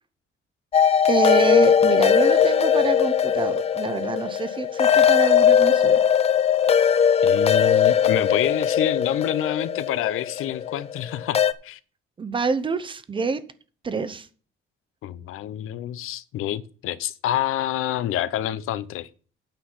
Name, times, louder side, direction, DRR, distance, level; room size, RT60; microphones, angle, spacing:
sound 1, 0.7-11.5, left 8 dB, 30° left, 0.6 m, -19 dB
voice 1, 1.1-6.0 12.2-13.4 13.8-14.3, right 4 dB, 25° right, 0.8 m, -26 dB
voice 2, 7.2-11.8 15.0-19.1, left 12 dB, 80° left, 0.8 m, -27 dB
9.0 x 5.8 x 7.2 m
cardioid pair, 170°, 21 cm